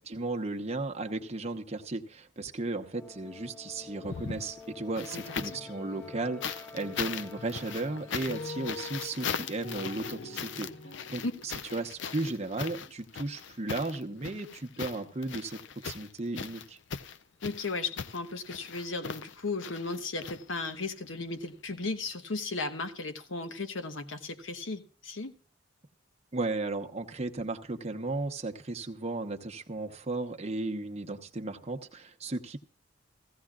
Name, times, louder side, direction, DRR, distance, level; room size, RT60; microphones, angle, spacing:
voice 1, 0.1-10.7 11.1-16.8 26.3-32.6, right 2 dB, 35° right, 1.0 m, -35 dB
sound 1, 2.9-8.8, left 4 dB, 15° left, 0.7 m, -48 dB
Walking on soil with leaves in forrest, 4.0-5.7 6.4-20.9 22.1-22.2, left 7 dB, 70° left, 0.5 m, -39 dB
sound 2, 4.5-4.7 5.0-6.4 6.7-11.2, left 2 dB, 50° left, 2.9 m, -45 dB
voice 2, 5.1-5.6 11.2-11.3 17.4-25.3, left 3 dB, 85° left, 1.1 m, -35 dB
15.5 x 15.5 x 2.4 m
head